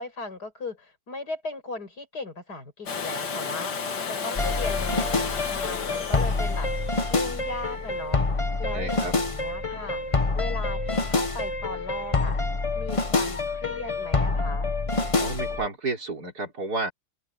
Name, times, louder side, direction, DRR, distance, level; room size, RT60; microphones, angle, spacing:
voice 1, 0.0-12.4 12.7-14.7, left 3 dB, 75° left, 6.7 m, -37 dB
Domestic sounds home sounds, 2.9-8.7 10.6-10.7, left 5 dB, 90° left, 2.3 m, -33 dB
sound 1, 4.4-15.7, left 3 dB, 25° left, 0.8 m, -27 dB
voice 2, 8.7-9.1 15.2-16.9, right 3 dB, 65° right, 5.2 m, -31 dB
open air
omnidirectional pair, 1.7 m